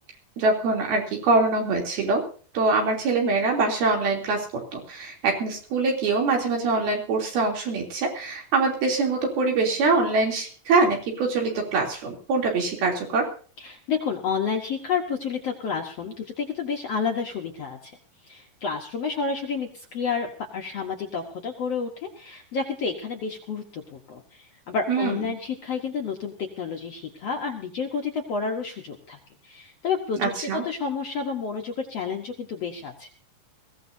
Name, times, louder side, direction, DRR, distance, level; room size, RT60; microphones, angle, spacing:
voice 1, 0.4-2.2 2.5-4.4 4.7-13.3 24.9-25.2 30.2-30.6, right 3 dB, 75° right, 1 dB, 5.1 m, -24 dB
voice 2, 13.6-18.0 18.2-30.3 30.6-33.1, left 5 dB, 60° left, 2 dB, 1.7 m, -30 dB
22.0 x 16.0 x 2.7 m, 0.42 s
omnidirectional pair, 4.5 m